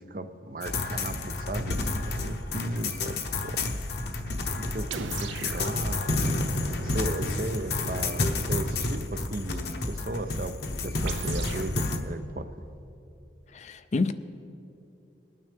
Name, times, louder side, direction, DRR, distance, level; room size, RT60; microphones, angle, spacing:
voice 1, 0.0-3.6 4.0-6.0 6.8-12.6, right 2 dB, 50° right, 10 dB, 0.5 m, -36 dB
sound 1, 0.6-12.0, left 2 dB, 60° left, 0.9 m, -30 dB
sound 2, 4.9-9.2 11.0-11.7, right 4 dB, 85° right, 0.7 m, -39 dB
voice 2, 13.5-14.1, left 3 dB, 40° left, 11 dB, 0.4 m, -28 dB
22.0 x 9.3 x 3.5 m, 2.7 s
head